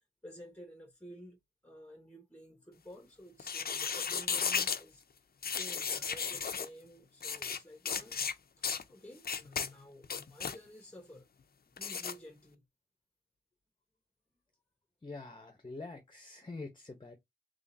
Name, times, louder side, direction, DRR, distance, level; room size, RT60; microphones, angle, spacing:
voice 1, 0.2-5.0 5.4-8.2 8.9-11.3 11.7-12.6, equal, 5° left, 1.1 m, -52 dB
sound 1, 3.4-4.8 5.4-6.7 7.2-7.6 7.9-8.3 8.6-8.8 9.2-9.7 10.0-10.6 11.8-12.1, left 6 dB, 60° left, 0.5 m, -34 dB
voice 2, 15.0-17.2, left 3 dB, 25° left, 0.8 m, -45 dB
3.7 x 3.4 x 2.7 m
wide cardioid pair, 75°, 18 cm